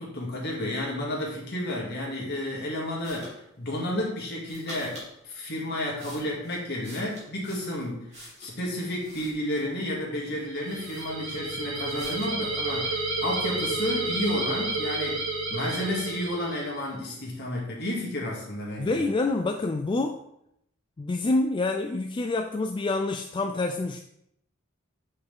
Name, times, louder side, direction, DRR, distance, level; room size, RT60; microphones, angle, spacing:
voice 1, 0.0-15.2 15.5-19.1, left 1 dB, 55° left, -3 dB, 2.4 m, -31 dB
sound 1, 3.0-3.4 4.4-5.1 5.7-8.6 9.0-9.8 10.3-10.4 10.6-11.5 11.9-12.4, equal, 35° right, 2.8 m, -46 dB
sound 2, 10.5-16.9, right 2 dB, 90° right, 1.7 m, -31 dB
voice 2, 18.8-20.2 21.0-24.0, left 2 dB, 25° left, 5 dB, 0.3 m, -27 dB
7.8 x 5.5 x 3.6 m, 0.78 s
head